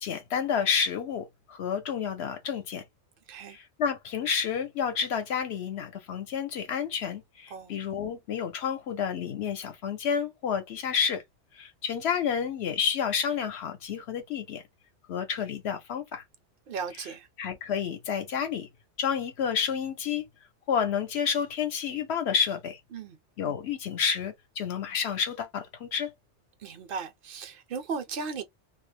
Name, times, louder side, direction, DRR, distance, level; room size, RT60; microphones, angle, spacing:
voice 1, 0.0-2.8 3.5-11.2 11.5-14.6 15.1-16.2 17.4-18.7 19.0-20.2 20.7-22.8 23.4-26.1, left 7 dB, 70° left, 0.9 m, -30 dB
voice 2, 16.7-17.3 22.9-23.2 26.6-28.4, right 5 dB, 60° right, 0.7 m, -36 dB
2.3 x 2.0 x 3.1 m
omnidirectional pair, 1.2 m